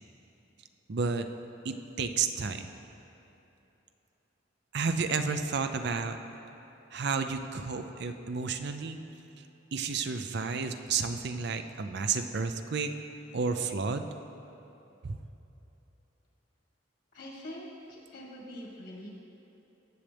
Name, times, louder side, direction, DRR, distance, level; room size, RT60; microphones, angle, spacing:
voice 1, 0.9-1.3 1.6-2.7 4.7-6.2 6.9-9.0 9.7-12.9 13.3-14.0 15.0-15.2, right 5 dB, 65° right, 8 dB, 0.6 m, -31 dB
voice 2, 17.1-19.2, equal, 65° left, -3 dB, 1.7 m, -44 dB
17.5 x 7.3 x 3.4 m, 3.0 s
head